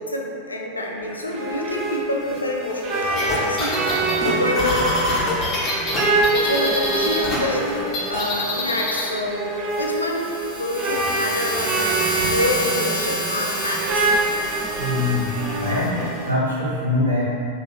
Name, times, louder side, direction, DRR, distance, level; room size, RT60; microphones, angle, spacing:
voice 1, 0.0-5.0 6.3-7.7 8.1-14.1, left 1 dB, 80° left, -1 dB, 0.3 m, -27 dB
sound 1, 1.0-16.3, right 2 dB, 35° right, 0.4 m, -26 dB
sound 2, 3.1-7.4 7.6-9.1, left 1 dB, 30° left, 0.8 m, -25 dB
sound 3, 9.7-15.9, equal, 65° right, 1.4 m, -30 dB
voice 2, 14.8-15.3 15.6-17.2, left 2 dB, 80° right, -8 dB, 0.8 m, -23 dB
2.7 x 2.6 x 2.8 m, 2.5 s
figure-of-eight pair, 90°, 0 cm